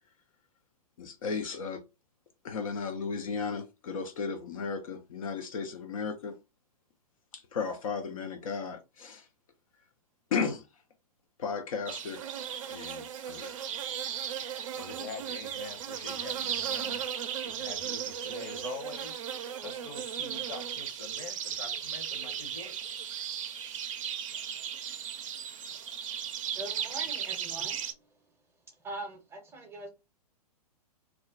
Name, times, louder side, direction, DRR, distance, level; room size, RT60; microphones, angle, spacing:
voice 1, 1.0-1.8 2.4-6.4 7.3-9.3 10.3-10.7 11.4-12.2 12.7-13.5, left 5 dB, 60° left, 0.5 m, -35 dB
sound 1, 11.9-27.9, right 9 dB, 55° right, 0.4 m, -36 dB
voice 2, 14.7-17.0 17.4-19.2 19.6-22.9, left 4 dB, 40° left, 0.9 m, -45 dB
voice 3, 26.6-27.8 28.8-29.9, right 2 dB, 10° right, 0.6 m, -42 dB
2.3 x 2.1 x 3.6 m
figure-of-eight pair, 115°, 20 cm